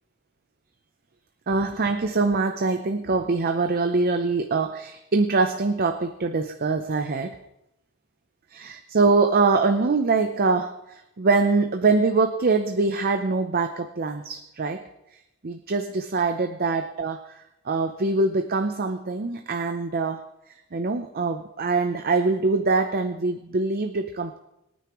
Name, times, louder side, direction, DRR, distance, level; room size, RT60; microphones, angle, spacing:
voice 1, 1.5-7.4 8.5-14.8 15.4-20.3 20.7-24.4, right 3 dB, 45° right, 7 dB, 0.6 m, -24 dB
22.0 x 9.3 x 3.1 m, 0.88 s
head